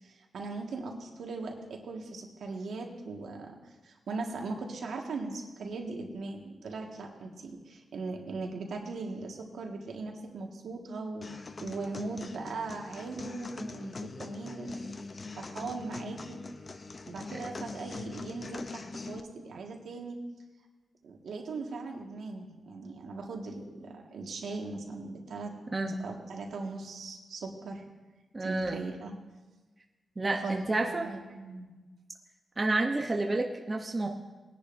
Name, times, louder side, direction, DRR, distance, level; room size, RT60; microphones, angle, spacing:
voice 1, 0.0-3.5 3.8-14.9 15.4-16.4 17.1-20.2 21.0-25.5 26.0-27.8 28.4-29.1 30.4-30.6 31.0-31.7, right 3 dB, 75° right, 1 dB, 1.7 m, -39 dB
sound 1, 11.2-19.2, left 3 dB, 35° left, 0.5 m, -42 dB
voice 2, 28.3-28.8 30.2-31.1 32.6-34.1, right 2 dB, 20° right, 2 dB, 0.8 m, -29 dB
20.0 x 10.5 x 2.6 m, 1.2 s
wide cardioid pair, 135°, 0 cm